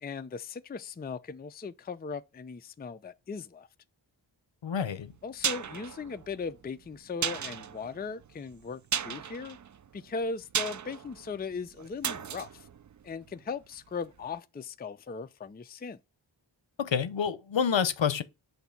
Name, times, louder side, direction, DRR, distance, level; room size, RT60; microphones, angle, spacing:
voice 1, 0.0-3.7 5.2-9.6 9.9-12.7 13.0-16.0, left 5 dB, 20° left, 0.4 m, -38 dB
voice 2, 4.6-5.1 16.8-18.2, left 7 dB, 70° left, 0.7 m, -28 dB
sound 1, 5.0-13.9 14.2-14.3, right 8 dB, 40° right, 0.4 m, -36 dB
6.6 x 2.7 x 5.7 m
wide cardioid pair, 45°, 47 cm